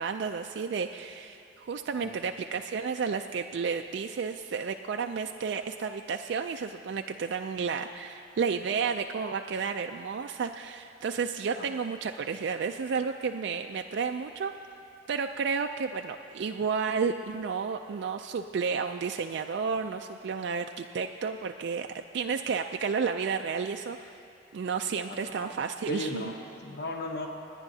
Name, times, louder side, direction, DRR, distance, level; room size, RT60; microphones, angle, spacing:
voice 1, 0.0-14.5 15.1-21.9 22.1-24.1 24.5-26.3, right 5 dB, 60° right, 5 dB, 0.3 m, -32 dB
voice 2, 25.1-25.5 25.9-27.3, left 1 dB, 60° left, 2 dB, 0.9 m, -36 dB
28.0 x 9.9 x 2.7 m, 2.7 s
head